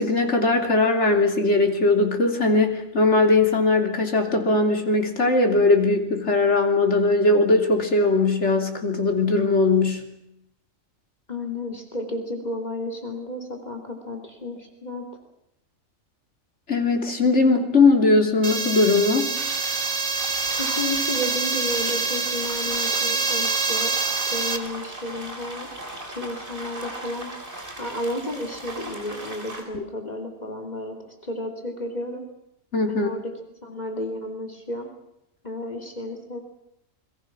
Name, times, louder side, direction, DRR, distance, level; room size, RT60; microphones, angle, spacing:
voice 1, 0.0-10.1 16.7-19.3 29.7-29.8 32.7-33.1, left 3 dB, 55° left, 3 dB, 3.3 m, -20 dB
voice 2, 11.3-15.0 20.6-25.7 26.1-27.3 27.8-32.2 32.9-33.3 33.6-34.9 35.4-36.4, left 1 dB, 30° left, 5 dB, 3.2 m, -32 dB
sound 1, 18.4-24.6, right 4 dB, 60° right, 1.7 m, -26 dB
sound 2, 19.3-29.6, right 1 dB, 40° right, 3.9 m, -38 dB
29.0 x 23.0 x 6.1 m, 0.81 s
omnidirectional pair, 1.4 m